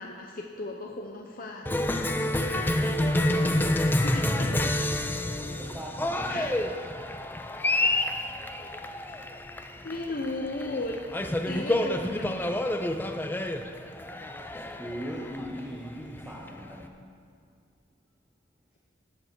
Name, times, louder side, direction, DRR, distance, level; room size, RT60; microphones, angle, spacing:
voice 1, 0.0-1.8 4.0-4.8 6.2-6.5 9.8-11.0 11.5-12.7, left 2 dB, 50° left, 1 dB, 0.7 m, -36 dB
Cheering, 1.7-16.8, left 1 dB, 10° left, 0.4 m, -28 dB
voice 2, 5.6-6.4 14.8-17.0, equal, 10° right, -3 dB, 0.9 m, -39 dB
18.5 x 6.8 x 4.6 m, 2.3 s
head